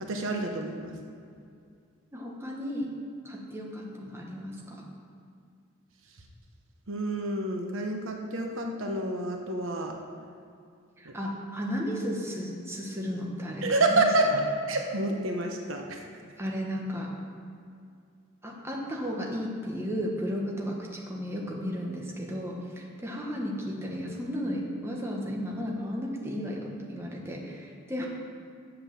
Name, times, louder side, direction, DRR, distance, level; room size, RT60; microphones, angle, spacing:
voice 1, 0.1-0.9 6.9-9.9 13.6-14.3 14.7-16.0, right 2 dB, 70° right, 2 dB, 1.1 m, -28 dB
voice 2, 2.1-2.9 3.2-4.9 11.0-14.4 16.4-17.1 18.4-28.1, equal, 10° right, -2 dB, 1.3 m, -34 dB
8.1 x 7.8 x 7.0 m, 2.3 s
head